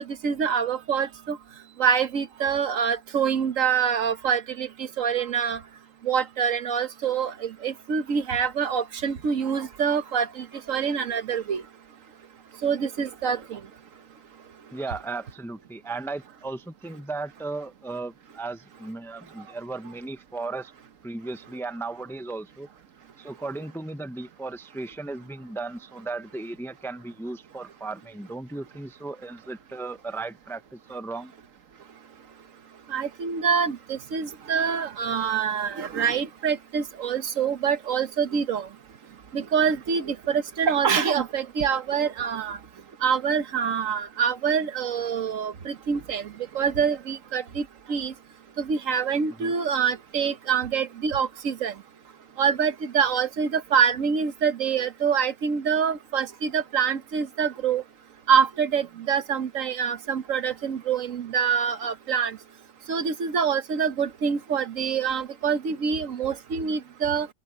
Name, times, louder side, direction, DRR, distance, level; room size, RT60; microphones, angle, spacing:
voice 1, 0.0-1.4 1.8-5.6 6.0-11.6 12.6-13.6 32.9-38.7 39.3-42.6 43.0-46.2 46.5-48.1 48.6-51.7 52.4-57.8 58.3-62.4 62.9-67.3, right 7 dB, 80° right, 1.5 m, -25 dB
voice 2, 14.7-20.7 21.0-22.7 23.2-31.3 49.4-49.5, right 3 dB, 5° left, 0.5 m, -36 dB
open air
omnidirectional pair, 1.3 m